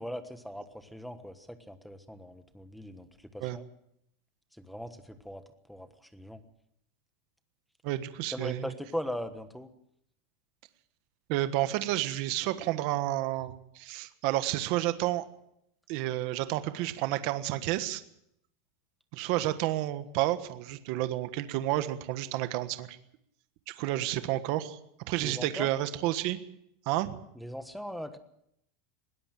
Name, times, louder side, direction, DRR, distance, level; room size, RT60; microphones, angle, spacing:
voice 1, 0.0-3.1 3.3-3.6 4.6-5.4 5.7-6.4 8.3-9.7 25.2-25.7 27.4-28.2, equal, ahead, 9 dB, 1.3 m, -39 dB
voice 2, 7.8-8.7 11.3-15.2 15.9-18.0 19.1-23.0 23.8-24.8 25.1-26.4 26.9-27.2, right 15 dB, 45° right, 11 dB, 1.4 m, -30 dB
20.5 x 17.5 x 7.6 m, 0.74 s
supercardioid pair, 175°, 0 cm